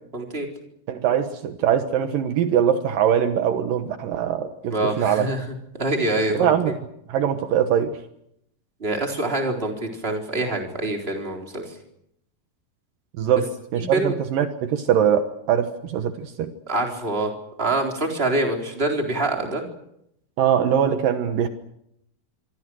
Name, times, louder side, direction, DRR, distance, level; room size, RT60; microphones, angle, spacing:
voice 1, 0.1-0.5 4.7-5.4 5.8-6.7 8.8-11.7 13.7-14.1 16.7-17.3 17.6-19.6, right 2 dB, 15° right, 2 dB, 4.0 m, -25 dB
voice 2, 0.9-5.3 6.3-6.7 7.1-8.0 13.2-16.5 20.4-21.5, right 9 dB, 70° right, 8 dB, 2.9 m, -22 dB
26.0 x 25.0 x 6.3 m, 0.76 s
omnidirectional pair, 4.2 m